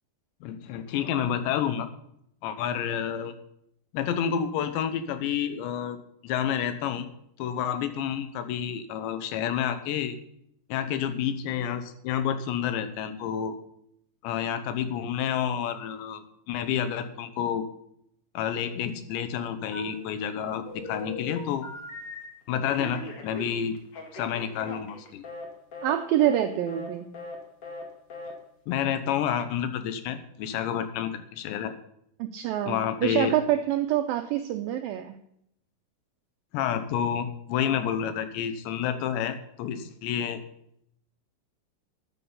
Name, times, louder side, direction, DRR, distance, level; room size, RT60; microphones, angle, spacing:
voice 1, 0.4-1.9 2.4-3.3 3.9-6.0 6.2-7.1 7.4-10.2 10.7-13.6 14.2-17.6 18.3-21.7 22.5-23.8 24.1-25.3 28.7-31.7 32.7-33.3 36.5-40.4, left 9 dB, 90° left, 10 dB, 3.3 m, -29 dB
Telephone, 19.7-20.3 20.7-22.3 22.6-25.5 25.7-25.9 26.2-26.4 26.7-26.9 27.1-27.4 27.6-27.8 28.1-28.3, left 2 dB, 40° left, 2.6 m, -39 dB
voice 2, 25.8-27.1 32.2-35.2, right 11 dB, 90° right, 7 dB, 2.0 m, -26 dB
13.5 x 9.9 x 5.6 m, 0.74 s
omnidirectional pair, 5.0 m